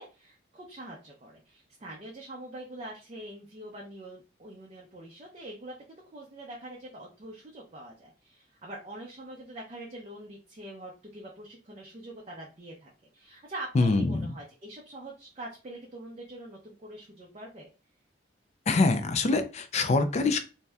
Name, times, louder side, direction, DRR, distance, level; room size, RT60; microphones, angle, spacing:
voice 1, 0.0-17.7, right 1 dB, 35° right, -2 dB, 0.5 m, -44 dB
voice 2, 13.7-14.3 18.7-20.4, left 3 dB, 40° left, 10 dB, 0.3 m, -24 dB
2.7 x 2.1 x 3.3 m, 0.32 s
head